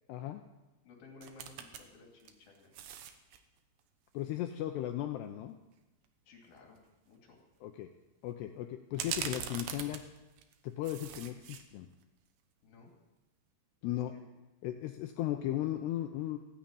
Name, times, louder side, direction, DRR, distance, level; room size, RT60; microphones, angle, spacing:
voice 1, 0.1-0.4 4.1-5.6 7.6-7.9 8.2-10.1 10.6-11.9 13.8-14.1 14.6-16.4, left 13 dB, 80° left, 6 dB, 2.5 m, -36 dB
voice 2, 0.8-2.7 6.3-6.8 7.1-7.4 12.6-12.9 13.8-14.2, left 3 dB, 55° left, 0 dB, 4.3 m, -56 dB
sound 1, 1.2-1.8 2.2-3.4 6.0-6.1 6.6-6.8 8.9-10.5 10.8-11.6 12.0-12.1, right 8 dB, 90° right, 2.0 m, -41 dB
16.5 x 9.2 x 8.9 m, 1.0 s
omnidirectional pair, 5.5 m